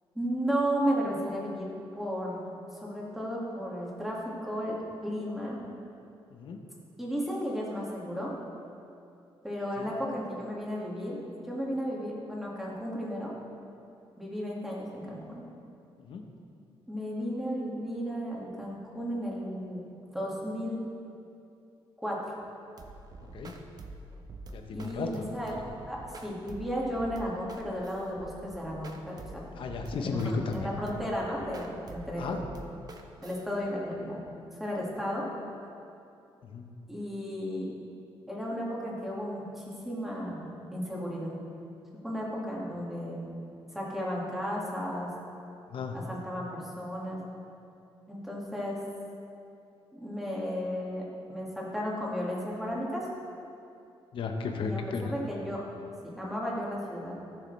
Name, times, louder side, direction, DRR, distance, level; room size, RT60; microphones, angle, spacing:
voice 1, 0.2-1.7 2.0-2.5 2.8-4.7 5.0-5.6 7.0-8.3 9.4-11.2 11.5-13.3 14.2-15.4 16.9-19.8 20.1-20.7 22.0-22.4 24.7-29.4 29.9-30.2 30.5-32.5 33.2-34.2 34.6-35.2 36.9-37.7 38.3-41.3 42.0-43.3 43.7-45.1 46.1-47.2 48.1-48.8 49.9-51.0 51.3-53.1 54.6-54.8 55.1-55.6 56.2-57.1, equal, 5° right, -4 dB, 2.0 m, -34 dB
sound 1, 22.8-33.4, right 2 dB, 40° right, 0.8 m, -47 dB
voice 2, 24.5-25.1 25.6-25.7 29.6-30.7 32.2-32.4 36.4-36.7 45.7-46.0 54.1-55.1, left 4 dB, 60° left, 4 dB, 1.0 m, -34 dB
15.0 x 6.5 x 3.3 m, 2.6 s
cardioid pair, 120°, 10 cm